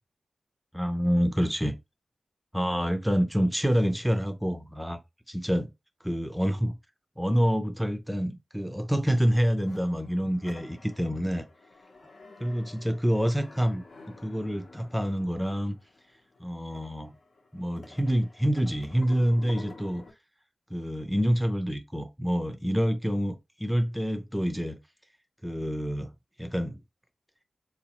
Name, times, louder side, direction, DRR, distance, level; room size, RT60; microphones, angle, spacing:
voice 1, 0.7-1.7 2.5-5.0 5.3-5.7 6.0-6.8 7.2-11.4 12.4-13.8 14.2-15.8 16.4-17.1 17.5-20.0 20.7-24.8 25.4-26.1 26.4-26.8, equal, 5° right, 0.4 m, -27 dB
sound 1, 9.6-20.1, left 3 dB, 75° left, 0.9 m, -51 dB
3.9 x 2.3 x 2.9 m
wide cardioid pair, 105°, 0 cm